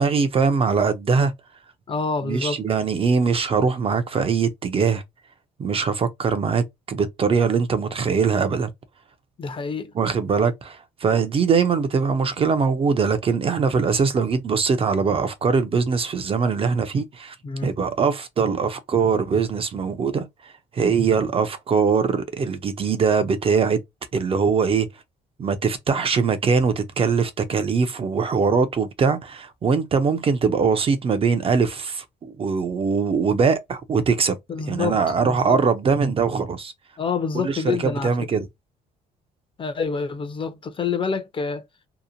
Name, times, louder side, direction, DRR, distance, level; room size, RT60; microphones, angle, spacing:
voice 1, 0.0-1.3 2.2-5.0 5.6-8.7 9.9-17.4 17.6-23.8 24.1-24.9 25.4-34.4 34.7-36.7 37.4-38.5, right 5 dB, 35° right, 0.5 m, -22 dB
voice 2, 1.9-2.6 9.4-9.9 17.4-17.7 34.5-35.6 37.0-38.3 39.6-41.7, left 5 dB, 30° left, 0.6 m, -27 dB
2.8 x 2.1 x 2.5 m
cardioid pair, 110°, 17 cm